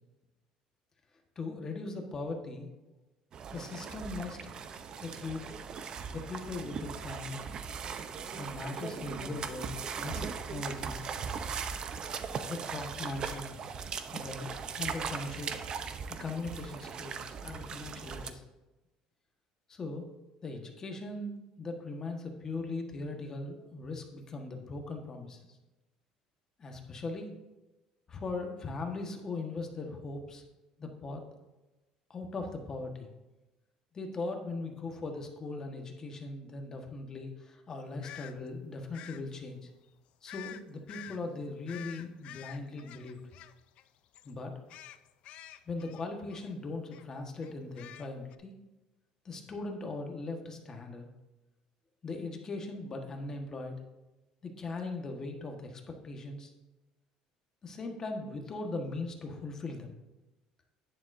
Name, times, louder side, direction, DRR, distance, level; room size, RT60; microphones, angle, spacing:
voice 1, 1.3-2.7 3.5-4.5 5.0-5.5 6.1-7.4 8.4-11.0 12.5-13.6 14.1-15.5 16.2-18.4 19.7-20.1 20.4-25.5 26.6-27.3 28.1-30.4 30.8-31.2 32.1-33.1 33.9-39.6 40.2-43.2 44.2-44.5 45.7-48.5 49.2-51.1 52.0-53.8 54.4-56.5 57.6-59.9, left 3 dB, 30° left, 3 dB, 1.4 m, -39 dB
sound 1, 3.3-18.3, right 6 dB, 40° right, 0.7 m, -39 dB
sound 2, 38.0-38.3 38.9-39.2 40.3-40.6 40.9-41.2 41.7-43.9 44.1-44.3 44.7-46.5 46.9-47.1 47.4-48.4, left 12 dB, 60° left, 0.5 m, -48 dB
10.5 x 10.0 x 2.7 m, 1.1 s
cardioid pair, 135°, 2 cm